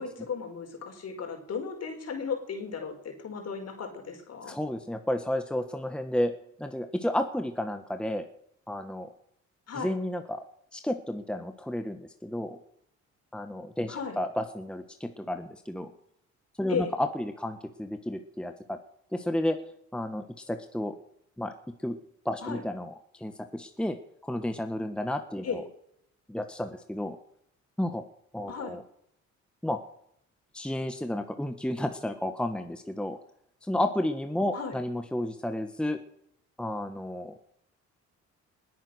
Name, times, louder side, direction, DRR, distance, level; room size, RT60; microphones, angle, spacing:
voice 1, 0.0-4.6 9.7-9.9 13.9-14.2 16.7-16.9 22.4-22.6 25.4-25.6 28.5-28.8 34.5-34.8, left 6 dB, 55° left, 4 dB, 4.8 m, -35 dB
voice 2, 4.5-6.3 6.6-8.3 8.7-9.1 9.7-10.4 10.7-12.6 13.3-15.9 16.6-18.8 19.1-19.6 19.9-20.9 21.4-21.5 21.8-22.0 22.2-25.6 26.3-27.2 27.8-28.0 28.3-28.8 29.6-29.8 30.5-33.2 33.6-36.0 36.6-37.3, left 1 dB, 5° left, 7 dB, 1.3 m, -32 dB
20.5 x 9.3 x 6.3 m, 0.71 s
cardioid pair, 90°, 30 cm